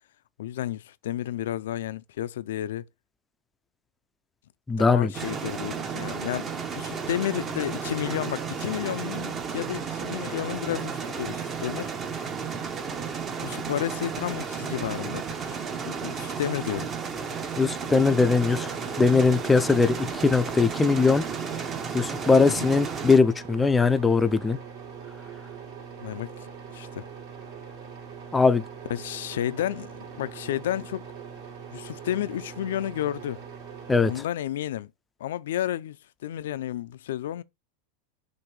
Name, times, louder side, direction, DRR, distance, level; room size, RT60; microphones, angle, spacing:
voice 1, 0.4-2.8 4.8-11.9 13.4-16.9 22.5-22.7 26.0-26.5 26.7-27.1 28.9-31.1 31.7-33.4 34.0-34.9 35.2-36.0 36.2-37.4, left 12 dB, 80° left, 0.4 m, -32 dB
voice 2, 4.7-5.1 17.6-18.7 19.0-21.2 21.9-24.6 28.3-28.6 33.9-34.1, left 4 dB, 10° left, 0.4 m, -20 dB
sound 1, 5.1-23.2, right 6 dB, 25° right, 0.7 m, -33 dB
sound 2, 18.2-34.2, right 7 dB, 65° right, 3.0 m, -42 dB
6.1 x 2.6 x 3.2 m
supercardioid pair, 140°, 0 cm